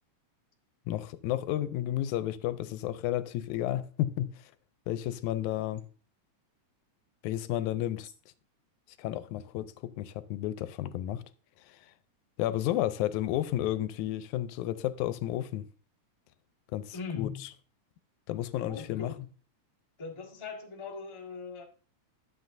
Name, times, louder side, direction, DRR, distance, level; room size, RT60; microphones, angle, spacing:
voice 1, 0.9-4.4 4.9-5.8 7.2-8.1 9.0-11.2 11.7-11.8 12.4-15.7 16.7-17.5 18.3-19.1, left 13 dB, 85° left, 1.9 m, -32 dB
voice 2, 16.9-17.4 18.6-19.3 20.0-21.6, left 5 dB, 20° left, 0.8 m, -40 dB
11.5 x 7.7 x 2.6 m
omnidirectional pair, 3.4 m